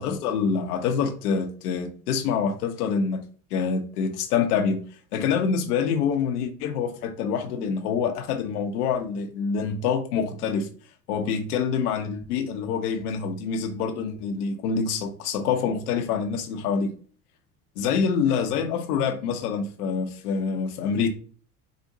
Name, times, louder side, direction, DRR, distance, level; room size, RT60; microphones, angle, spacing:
voice 1, 0.0-3.2 3.5-4.8 5.1-10.7 11.1-16.9 17.8-21.1, left 6 dB, 80° left, 0.9 m, -26 dB
5.0 x 2.5 x 2.7 m
hypercardioid pair, 75°, 44 cm